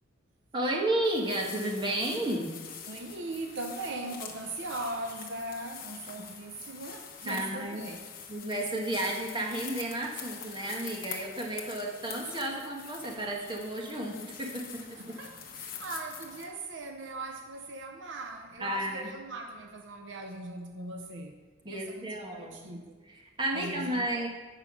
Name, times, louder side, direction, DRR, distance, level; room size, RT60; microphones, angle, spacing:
voice 1, 0.5-2.5 7.3-7.9 8.3-15.2 18.6-19.1 21.6-24.3, right 1 dB, 25° right, 1.3 m, -32 dB
sound 1, 1.0-16.5, left 7 dB, 45° left, 1.1 m, -45 dB
voice 2, 2.9-8.0 15.0-21.4 21.7-22.9 23.5-24.3, right 2 dB, 65° right, 0.7 m, -40 dB
8.9 x 5.5 x 6.1 m
head